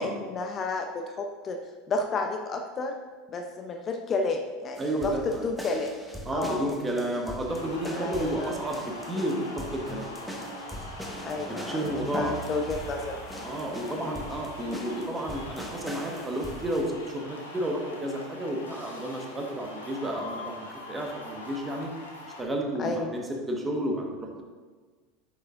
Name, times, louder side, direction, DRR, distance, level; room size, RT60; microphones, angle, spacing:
voice 1, 0.0-1.6 1.9-2.9 3.3-5.9 6.3-6.7 7.9-8.5 11.2-13.2 14.0-14.2 22.8-23.1, left 3 dB, 35° left, 4 dB, 0.6 m, -31 dB
sound 1, 4.7-16.8, right 1 dB, ahead, 1.1 m, -41 dB
voice 2, 4.8-5.5 6.2-10.1 11.5-12.3 13.4-21.9 22.4-24.4, right 1 dB, 15° right, 1 dB, 1.4 m, -31 dB
Applause encore, 7.5-22.4, left 2 dB, 80° left, 1.2 m, -43 dB
9.7 x 6.8 x 2.5 m, 1.4 s
figure-of-eight pair, 75°, 0 cm